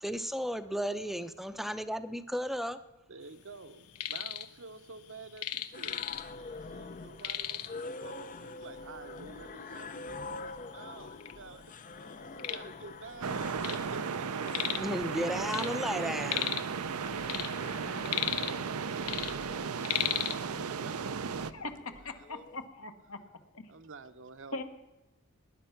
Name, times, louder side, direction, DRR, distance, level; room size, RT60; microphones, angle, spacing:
voice 1, 0.0-2.8 14.8-16.6, equal, ahead, 10 dB, 0.7 m, -34 dB
voice 2, 3.1-11.6 12.4-15.2 22.0-22.5 23.7-24.6, right 4 dB, 60° right, 8 dB, 0.9 m, -51 dB
sound 1, 3.7-4.5 4.8-6.5 6.8-6.9 7.2-7.9 8.6-8.7 9.3-9.4 10.1-10.2 10.5-11.3 11.8-13.9 14.1-15.0 15.2-16.8 17.1-18.8 19.0-20.4, left 11 dB, 90° left, 0.8 m, -35 dB
sound 2, 5.7-22.6, left 3 dB, 35° left, 0.6 m, -46 dB
sound 3, 13.2-21.5, right 6 dB, 80° right, 0.6 m, -35 dB
voice 3, 21.5-23.2 23.5-23.6 24.5-24.6, left 2 dB, 70° left, 7 dB, 1.4 m, -40 dB
19.5 x 10.0 x 5.8 m, 1.1 s
head